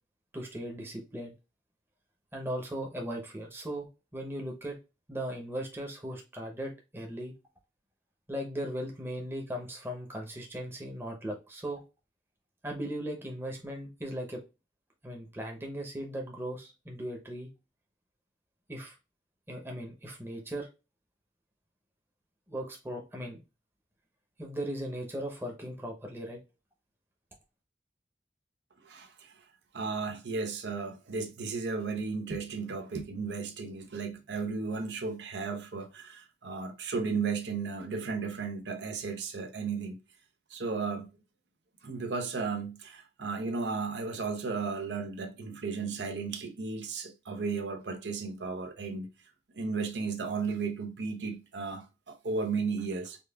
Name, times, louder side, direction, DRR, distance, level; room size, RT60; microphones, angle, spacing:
voice 1, 0.3-1.3 2.3-4.8 5.1-7.3 8.3-11.8 12.6-14.4 15.0-17.5 18.7-18.9 19.5-20.7 22.5-23.4 24.4-26.4, right 1 dB, 15° right, 0.8 m, -38 dB
voice 2, 28.9-29.3 29.7-40.0 40.5-41.1 41.8-49.1 49.5-53.2, right 4 dB, 80° right, 0.7 m, -34 dB
5.2 x 2.4 x 2.3 m
head